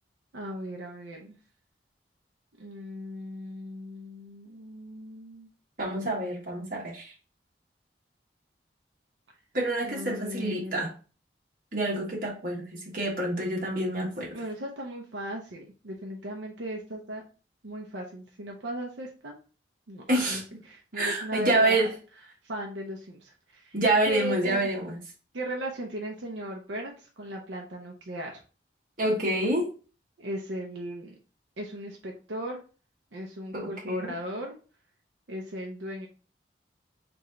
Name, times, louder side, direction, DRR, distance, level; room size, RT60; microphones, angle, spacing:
voice 1, 0.3-1.4 2.6-5.5 9.8-10.9 14.3-17.2 17.6-19.4 19.9-21.8 22.4-23.8 24.1-24.6 25.3-28.4 30.2-31.1 31.6-32.6 33.1-34.5 35.3-36.1, right 1 dB, 85° right, 0 dB, 0.7 m, -37 dB
voice 2, 5.8-7.1 9.5-10.9 11.7-14.3 20.1-20.6 21.0-21.9 23.7-25.0 29.0-29.7 33.5-34.1, right 1 dB, 50° right, -2 dB, 1.5 m, -27 dB
3.5 x 3.2 x 3.7 m, 0.36 s
head